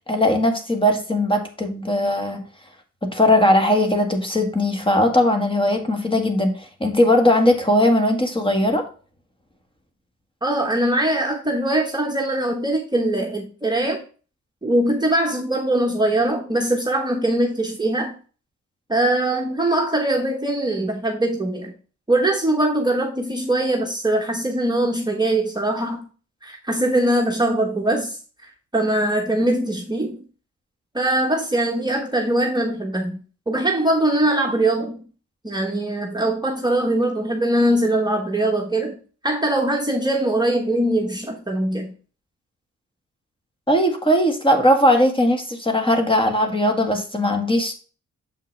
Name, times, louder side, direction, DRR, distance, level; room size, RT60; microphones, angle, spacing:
voice 1, 0.1-2.4 3.0-8.8 43.7-47.7, left 1 dB, 15° left, 1.6 m, -19 dB
voice 2, 10.4-14.0 14.6-18.1 18.9-21.7 22.1-26.1 26.4-30.2 30.9-35.0 35.4-39.0 39.2-41.9, right 1 dB, 15° right, 1.1 m, -22 dB
7.2 x 5.4 x 3.2 m
cardioid pair, 100°, 30 cm